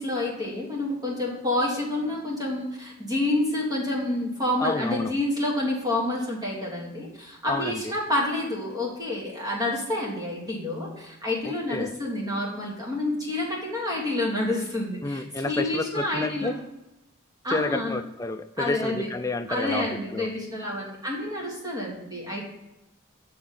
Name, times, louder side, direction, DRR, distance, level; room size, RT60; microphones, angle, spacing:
voice 1, 0.0-16.6 17.4-17.9 18.6-19.1 19.5-22.4, left 1 dB, 20° right, -3 dB, 1.7 m, -28 dB
voice 2, 4.6-5.1 7.5-7.9 11.4-11.9 15.0-16.5 17.5-20.3, left 2 dB, 15° left, 7 dB, 0.3 m, -30 dB
7.9 x 3.8 x 5.6 m, 0.96 s
head